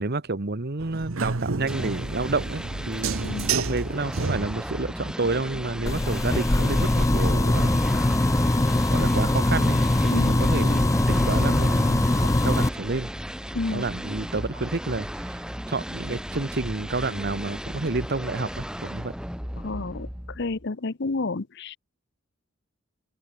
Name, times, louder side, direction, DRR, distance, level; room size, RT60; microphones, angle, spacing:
voice 1, 0.0-7.8 8.9-13.1 13.7-19.1, right 3 dB, 50° right, 1.2 m, -30 dB
sound 1, 0.8-4.9, right 4 dB, 80° right, 1.1 m, -30 dB
sound 2, 1.7-20.7, equal, 5° right, 3.7 m, -35 dB
sound 3, 5.9-12.7, left 1 dB, 15° left, 0.5 m, -21 dB
voice 2, 19.6-20.1 20.4-21.8, left 3 dB, 55° left, 0.8 m, -30 dB
open air
head